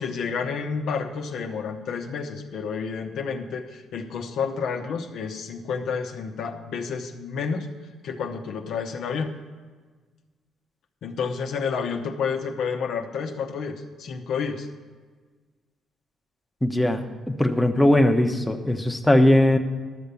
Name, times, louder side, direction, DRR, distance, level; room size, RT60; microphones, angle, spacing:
voice 1, 0.0-7.7 8.0-9.4 11.0-14.7, left 5 dB, 75° left, 4 dB, 0.9 m, -30 dB
voice 2, 16.6-19.6, left 1 dB, 5° left, 4 dB, 0.9 m, -19 dB
12.0 x 6.7 x 6.9 m, 1.4 s
cardioid pair, 90°, 0 cm